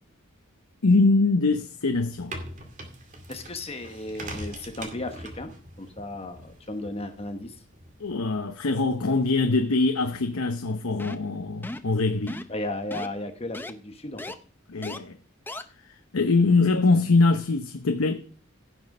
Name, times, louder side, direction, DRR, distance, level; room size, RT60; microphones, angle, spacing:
voice 1, 0.8-2.4 8.0-12.4 14.7-15.2 16.1-18.2, left 3 dB, 85° left, 0.9 m, -23 dB
sound 1, 1.9-8.2, right 1 dB, 35° right, 2.3 m, -42 dB
voice 2, 3.3-5.5 5.8-7.6 12.5-14.2, left 2 dB, 30° left, 1.2 m, -35 dB
sound 2, 11.0-11.3 11.6-11.9 12.3-12.6 12.9-13.1 13.5-13.7 14.2-14.3 14.8-15.0 15.5-15.6, left 1 dB, 10° left, 0.7 m, -36 dB
16.0 x 6.3 x 5.4 m
head